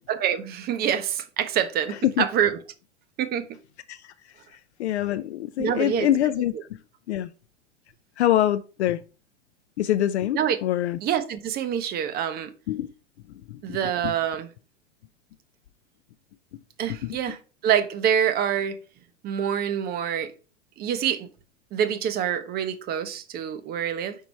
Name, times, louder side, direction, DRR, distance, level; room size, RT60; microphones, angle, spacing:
voice 1, 0.1-2.5 3.2-3.5 5.6-6.1 10.3-10.6 11.0-12.5 13.6-14.5 16.8-17.4 17.6-18.8 19.2-20.3 20.8-21.3 21.7-24.2, right 9 dB, 25° right, 0.6 m, -26 dB
voice 2, 1.9-2.3 3.9-4.1 4.5-6.8 7.1-7.3 8.2-9.0 9.8-11.0 12.7-12.9 13.5-13.8 14.0-14.1 16.9-17.2, left 12 dB, 60° left, 0.5 m, -25 dB
5.0 x 4.5 x 4.4 m
figure-of-eight pair, 100°, 37 cm